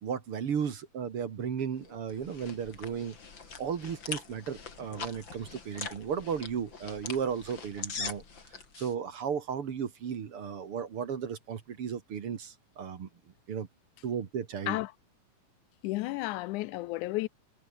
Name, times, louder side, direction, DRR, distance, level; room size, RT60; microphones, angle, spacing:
voice 1, 0.0-3.2 3.6-8.2 8.8-13.1 13.5-13.7 14.0-14.8, right 7 dB, 45° right, 2.4 m, -35 dB
sound 1, 1.8-8.9, left 5 dB, 35° left, 3.3 m, -42 dB
voice 2, 15.8-17.3, left 19 dB, 80° left, 1.8 m, -32 dB
omnidirectional pair, 3.8 m